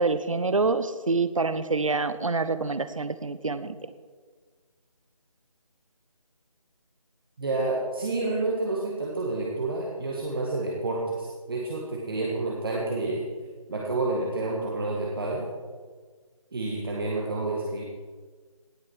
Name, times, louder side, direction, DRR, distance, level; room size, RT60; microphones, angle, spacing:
voice 1, 0.0-3.8, right 3 dB, 65° right, 13 dB, 0.8 m, -26 dB
voice 2, 7.4-13.3 13.7-15.4 16.5-17.8, right 2 dB, 40° right, -3 dB, 1.7 m, -29 dB
18.0 x 6.4 x 4.6 m, 1.5 s
figure-of-eight pair, 160°, 18 cm